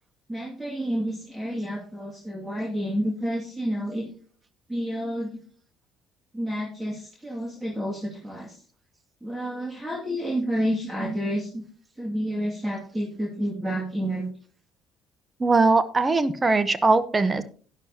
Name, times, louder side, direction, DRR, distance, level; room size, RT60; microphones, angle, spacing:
voice 1, 0.3-4.1 4.7-5.4 6.3-8.6 9.2-11.6 12.0-14.2, equal, 10° right, -2 dB, 2.2 m, -29 dB
voice 2, 15.4-17.4, right 3 dB, 25° right, 14 dB, 0.8 m, -21 dB
12.5 x 10.0 x 2.8 m, 0.43 s
hypercardioid pair, 60°, 0 cm